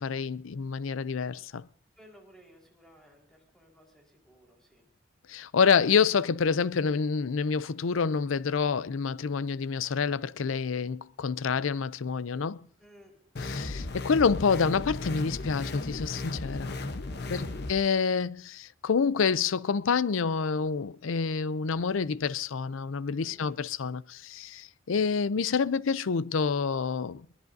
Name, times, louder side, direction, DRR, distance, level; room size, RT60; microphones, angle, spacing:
voice 1, 0.0-1.7 5.3-12.6 13.4-16.8 17.3-27.3, left 5 dB, 85° left, 0.5 m, -28 dB
voice 2, 2.0-4.8 12.8-13.2 17.1-17.6 23.2-23.6, equal, 5° left, 4.5 m, -56 dB
sound 1, 13.4-17.7, left 2 dB, 55° left, 1.0 m, -35 dB
22.0 x 20.0 x 2.7 m
head